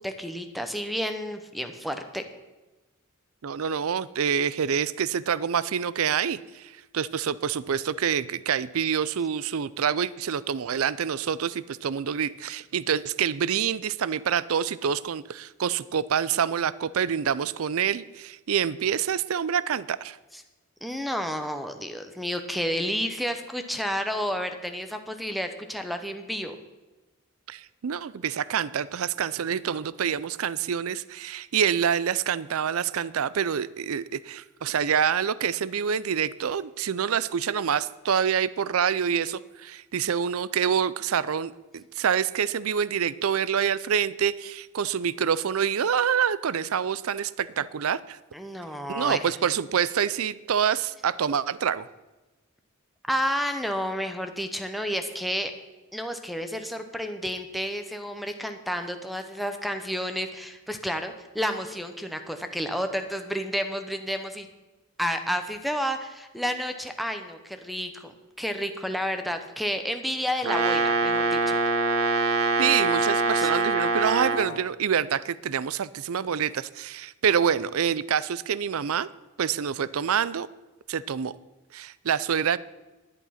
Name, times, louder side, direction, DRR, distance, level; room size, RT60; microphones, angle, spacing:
voice 1, 0.0-2.3 20.3-20.4 20.8-26.6 48.3-49.3 53.1-55.5 55.9-64.5 65.0-68.1 68.4-71.6 73.4-73.5, equal, ahead, 7 dB, 0.8 m, -31 dB
voice 2, 3.4-20.2 27.5-48.2 48.9-51.9 72.6-79.1 79.4-80.5 80.9-81.3 81.7-82.6, right 7 dB, 70° right, 18 dB, 0.5 m, -26 dB
Brass instrument, 70.4-74.5, right 3 dB, 90° right, 1.6 m, -24 dB
11.0 x 10.5 x 5.7 m, 1.1 s
head